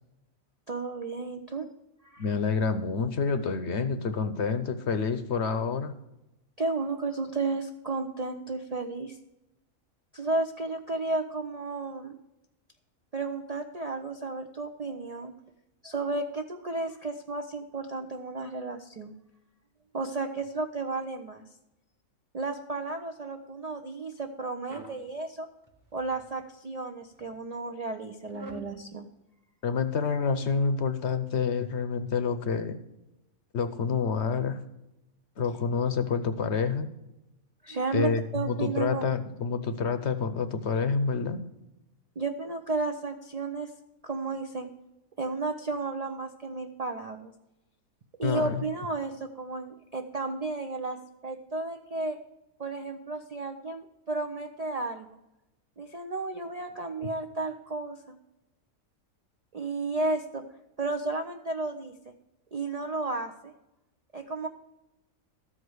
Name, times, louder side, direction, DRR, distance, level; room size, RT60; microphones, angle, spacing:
voice 1, 0.7-1.7 2.0-2.3 6.6-9.2 10.1-12.1 13.1-15.3 15.8-19.1 19.9-21.4 22.3-25.5 25.9-29.1 37.6-39.0 42.2-43.7 44.0-44.7 45.2-47.3 48.2-51.0 51.2-52.2 52.6-55.2 55.8-58.2 59.5-60.4 60.8-61.9 62.5-63.5 64.1-64.5, right 3 dB, 50° right, 5 dB, 0.5 m, -33 dB
voice 2, 2.2-6.0 29.6-32.8 33.5-34.6 35.4-36.9 37.9-41.4 48.2-48.6, left 5 dB, 60° left, 10 dB, 0.9 m, -28 dB
sound 1, 24.7-25.0 25.6-26.3 27.0-27.4 28.3-28.7, right 1 dB, 15° right, 0.9 m, -46 dB
13.0 x 5.0 x 7.9 m, 0.93 s
omnidirectional pair, 1.5 m